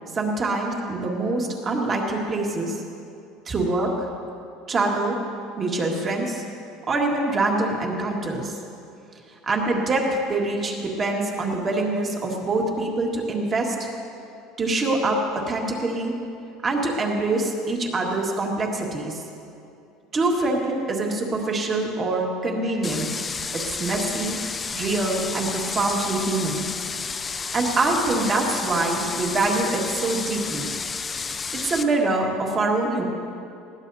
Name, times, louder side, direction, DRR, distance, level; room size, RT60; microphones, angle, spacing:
voice 1, 0.1-2.8 3.5-4.1 4.7-5.2 5.6-6.4 6.9-8.6 9.4-13.9 14.6-16.2 16.6-19.2 20.1-23.3 23.5-24.4 24.7-26.7 27.3-30.7 31.6-33.0, right 2 dB, 25° right, 0 dB, 1.8 m, -25 dB
sound 1, 22.8-31.8, left 5 dB, 20° left, 0.4 m, -31 dB
20.0 x 16.5 x 2.8 m, 2.6 s
cardioid pair, 155°, 0 cm